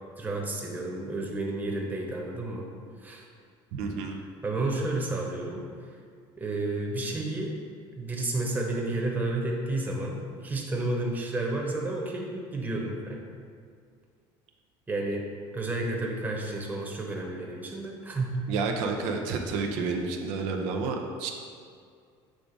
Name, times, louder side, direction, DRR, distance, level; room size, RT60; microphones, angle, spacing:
voice 1, 0.2-2.7 3.0-3.2 4.4-5.6 6.4-7.6 7.9-13.2 14.9-15.2 15.5-18.3, right 2 dB, 15° right, -1 dB, 1.0 m, -31 dB
voice 2, 3.7-4.2 18.5-21.3, right 4 dB, 85° right, 2 dB, 0.7 m, -30 dB
7.6 x 3.6 x 5.1 m, 2.2 s
cardioid pair, 135°, 11 cm